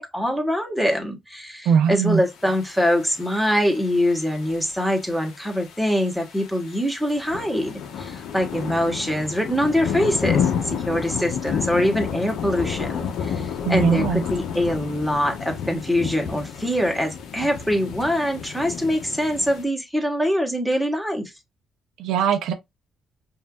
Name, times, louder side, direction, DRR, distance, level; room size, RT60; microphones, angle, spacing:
voice 1, 0.0-21.2, equal, ahead, 1.3 m, -24 dB
voice 2, 1.7-2.2 13.6-14.2 22.0-22.5, right 7 dB, 85° right, 0.7 m, -20 dB
sound 1, 2.5-19.6, left 7 dB, 80° left, 0.8 m, -31 dB
5.4 x 2.6 x 2.3 m
cardioid pair, 90°, 0 cm